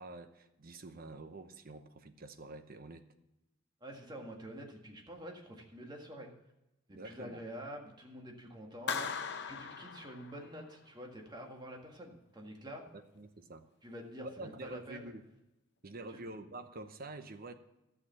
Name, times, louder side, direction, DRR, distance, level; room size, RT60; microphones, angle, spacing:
voice 1, 0.0-3.0 6.9-7.4 12.9-13.7 14.4-15.2 15.8-17.5, right 2 dB, 50° right, 9 dB, 0.9 m, -47 dB
voice 2, 3.8-6.3 6.9-12.9 13.8-15.1 16.1-16.2, equal, 20° right, 1 dB, 1.8 m, -47 dB
Clapping, 8.9-10.7, left 6 dB, 60° left, 0.8 m, -39 dB
12.5 x 6.7 x 5.8 m, 0.93 s
head